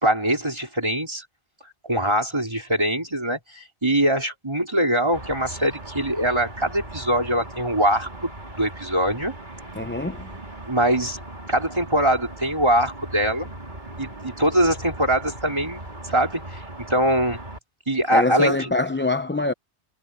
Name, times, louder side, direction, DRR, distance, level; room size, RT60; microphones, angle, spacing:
voice 1, 0.0-1.2 1.8-8.3 8.6-9.3 10.7-11.2 11.5-13.5 14.0-16.6 16.9-17.4 17.9-18.7, right 1 dB, 25° right, 4.4 m, -23 dB
sound 1, 5.1-17.6, right 1 dB, 40° right, 3.8 m, -38 dB
voice 2, 9.7-10.3 18.1-19.5, left 2 dB, 15° left, 0.6 m, -24 dB
omnidirectional pair, 1.2 m